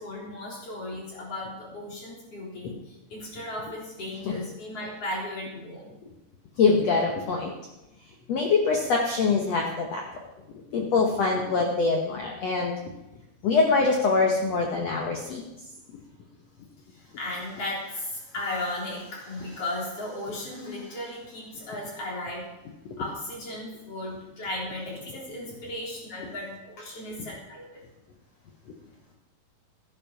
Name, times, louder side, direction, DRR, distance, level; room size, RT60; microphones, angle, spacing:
voice 1, 0.0-5.9 16.9-22.4 23.0-27.6, left 1 dB, 40° left, -4 dB, 4.5 m, -36 dB
voice 2, 6.6-7.5 8.3-10.0 10.7-12.7 13.4-15.4, left 4 dB, 65° left, 1 dB, 1.6 m, -24 dB
13.5 x 10.5 x 5.7 m, 0.94 s
omnidirectional pair, 4.5 m